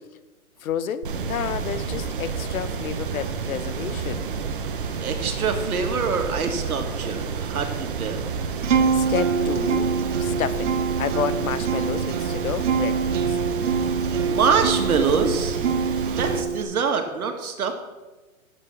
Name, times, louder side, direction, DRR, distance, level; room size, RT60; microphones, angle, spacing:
voice 1, 0.6-4.3 8.9-13.4, left 8 dB, 70° left, 14 dB, 0.9 m, -30 dB
sound 1, 1.0-16.4, right 5 dB, 35° right, 0.8 m, -30 dB
voice 2, 5.0-8.3 14.2-15.6 16.1-17.7, right 5 dB, 75° right, 5 dB, 2.0 m, -25 dB
Acoustic guitar, 8.6-16.6, right 5 dB, 55° right, 1.2 m, -25 dB
11.0 x 7.6 x 6.1 m, 1.2 s
hypercardioid pair, 175°, 44 cm